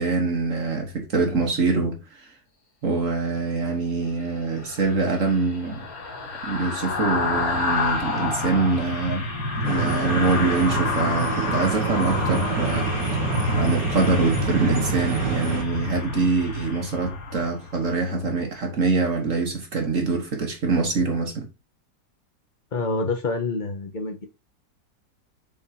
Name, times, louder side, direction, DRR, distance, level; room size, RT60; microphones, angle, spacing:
voice 1, 0.0-2.2 2.8-5.8 6.4-9.3 9.6-12.9 13.6-21.5, right 3 dB, 50° right, 1.7 m, -24 dB
sound 1, 4.6-17.9 18.3-18.5, left 2 dB, 55° left, 2.0 m, -28 dB
sound 2, 9.6-15.6, right 6 dB, 75° right, 1.7 m, -28 dB
voice 2, 22.7-24.3, left 3 dB, 30° left, 1.1 m, -27 dB
7.1 x 4.6 x 2.8 m
omnidirectional pair, 1.9 m